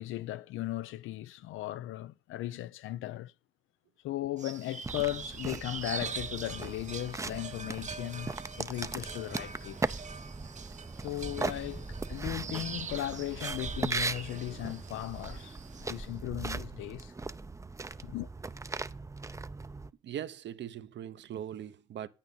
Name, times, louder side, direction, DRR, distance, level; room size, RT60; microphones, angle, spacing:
voice 1, 0.0-3.3 4.0-9.9 11.0-17.1 18.0-18.3, left 15 dB, 85° left, 0.5 m, -37 dB
sound 1, 4.4-16.1, right 6 dB, 35° right, 0.9 m, -43 dB
sound 2, 4.8-19.9, right 3 dB, 15° right, 0.5 m, -39 dB
voice 2, 20.0-22.1, right 10 dB, 65° right, 0.9 m, -40 dB
9.1 x 8.8 x 5.5 m
cardioid pair, 90°, 20 cm